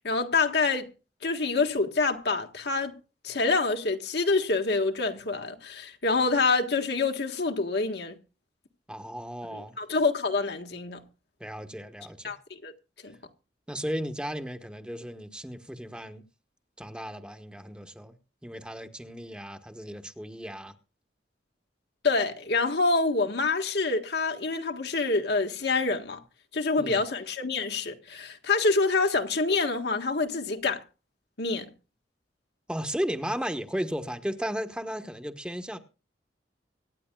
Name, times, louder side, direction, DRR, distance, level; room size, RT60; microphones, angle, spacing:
voice 1, 0.0-0.9 1.2-2.9 3.2-8.1 9.5-11.0 12.2-12.7 13.0-13.1 22.0-26.2 26.5-30.8 31.4-31.7, left 3 dB, 65° left, 1.6 m, -26 dB
voice 2, 8.9-9.8 11.4-12.3 13.7-16.2 16.8-18.1 18.4-20.7 26.8-27.0 32.7-35.8, equal, 5° right, 1.0 m, -35 dB
25.0 x 9.6 x 2.3 m
head